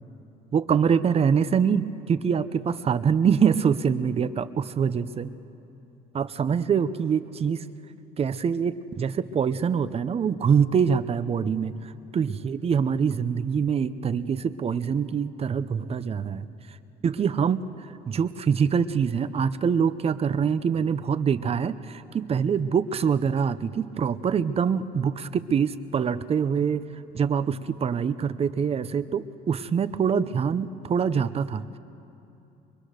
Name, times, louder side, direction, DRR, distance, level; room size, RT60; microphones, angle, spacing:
voice 1, 0.5-5.3 6.1-7.6 8.2-11.7 12.1-16.5 17.0-17.6 18.1-26.9 27.1-31.6, right 7 dB, 35° right, 13 dB, 0.7 m, -24 dB
23.5 x 23.5 x 6.5 m, 2.8 s
cardioid pair, 110°, 17 cm